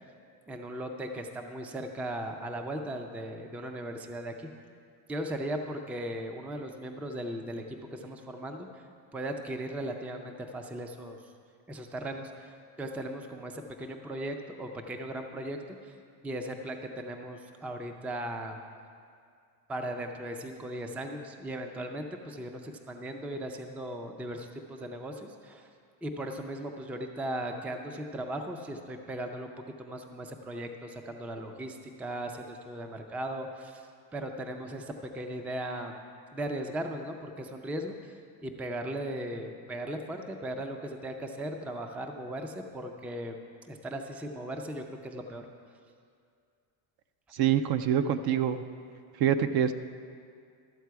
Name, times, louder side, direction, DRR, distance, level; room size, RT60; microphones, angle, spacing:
voice 1, 0.5-4.5 5.1-8.8 9.1-11.2 11.7-16.0 16.2-18.6 19.7-25.7 26.0-29.5 29.8-33.8 34.1-36.0 36.3-43.4 43.7-45.4, right 1 dB, 5° right, 4 dB, 0.4 m, -37 dB
voice 2, 47.3-48.6 49.2-49.7, right 9 dB, 50° right, 10 dB, 0.6 m, -25 dB
13.0 x 7.4 x 4.6 m, 2.2 s
cardioid pair, 120°, 48 cm